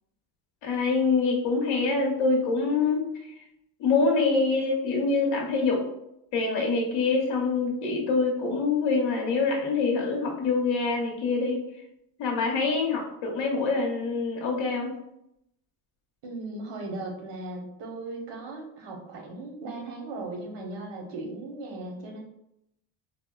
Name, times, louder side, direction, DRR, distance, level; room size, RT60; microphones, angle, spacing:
voice 1, 0.6-3.3 3.8-5.8 6.3-11.6 12.2-14.9, left 4 dB, 65° left, -1 dB, 0.9 m, -25 dB
voice 2, 16.2-22.2, right 2 dB, 65° right, 2 dB, 1.0 m, -37 dB
4.3 x 2.1 x 2.3 m, 0.81 s
cardioid pair, 125°, 47 cm